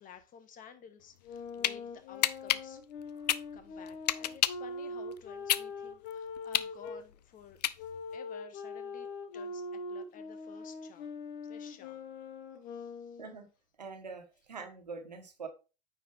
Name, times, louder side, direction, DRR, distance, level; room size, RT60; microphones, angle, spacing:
voice 1, 0.0-2.8 3.5-9.1 9.3-11.1 11.4-12.0 12.5-13.2, left 8 dB, 40° left, 1.4 m, -54 dB
sound 1, 1.2-1.8 2.2-4.7 5.1-8.2, left 12 dB, 80° left, 0.4 m, -30 dB
sound 2, 1.2-7.0 7.8-13.4, left 3 dB, 55° left, 1.2 m, -42 dB
voice 2, 13.8-15.5, right 4 dB, 90° right, 1.3 m, -44 dB
9.1 x 4.8 x 3.4 m
hypercardioid pair, 80°, 21 cm